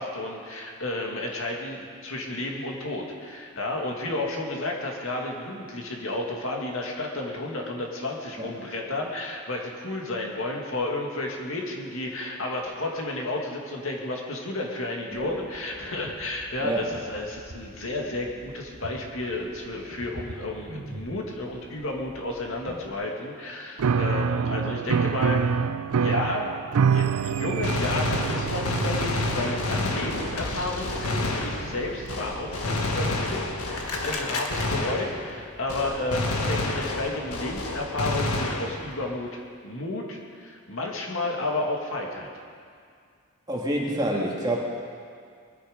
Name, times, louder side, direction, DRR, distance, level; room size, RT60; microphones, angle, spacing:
voice 1, 0.0-25.4 26.0-26.5 26.9-42.3, left 2 dB, 65° left, 0 dB, 2.1 m, -32 dB
sound 1, 15.1-22.9, right 1 dB, 40° right, 1.1 m, -45 dB
Piano, 23.8-32.3, right 6 dB, 85° right, 0.4 m, -27 dB
Gunshot gunfire, 27.6-35.4 35.7-39.0, left 2 dB, 90° left, 1.6 m, -29 dB
voice 2, 43.5-44.6, right 1 dB, 20° right, -2 dB, 1.8 m, -27 dB
22.0 x 10.0 x 5.1 m, 2.2 s
head